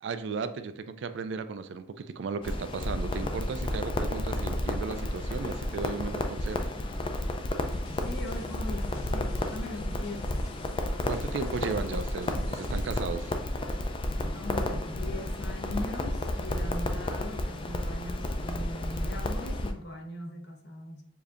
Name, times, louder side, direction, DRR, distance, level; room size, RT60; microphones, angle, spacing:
voice 1, 0.0-6.7 11.0-13.3, right 5 dB, 60° right, 0.3 m, -35 dB
Crackle, 2.4-19.7, left 1 dB, 25° left, 0.3 m, -32 dB
voice 2, 7.6-10.4 14.1-21.0, left 1 dB, 50° left, 0.7 m, -40 dB
sound 1, 7.7-14.5 14.8-15.0, left 2 dB, 80° left, 0.8 m, -49 dB
6.7 x 2.7 x 2.4 m
head